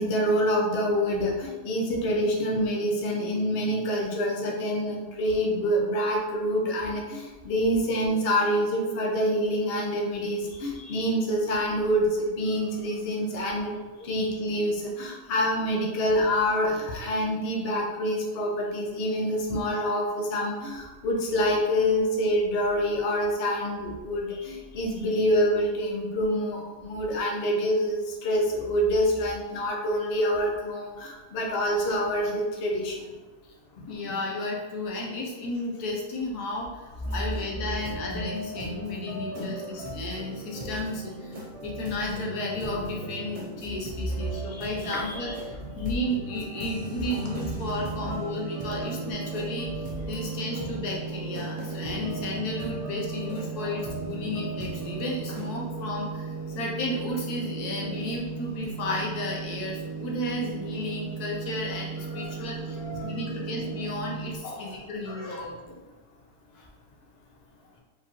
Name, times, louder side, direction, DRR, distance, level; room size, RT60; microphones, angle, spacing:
voice 1, 0.0-13.7 14.0-33.1 34.1-34.2 39.3-39.6 48.0-48.1 53.6-53.7 62.1-63.1 64.4-64.7 65.1-65.4, equal, 45° left, -1 dB, 0.9 m, -26 dB
voice 2, 10.5-11.0 14.1-14.3 24.3-24.5 25.0-25.1 33.9-62.8 63.0-65.8 66.5-66.7, left 1 dB, 80° left, -1 dB, 1.4 m, -33 dB
sound 1, 37.0-55.5, right 1 dB, 30° right, 0.7 m, -39 dB
sound 2, 47.1-64.4, right 5 dB, 5° right, 1.0 m, -36 dB
4.7 x 3.5 x 3.0 m, 1.3 s
omnidirectional pair, 1.6 m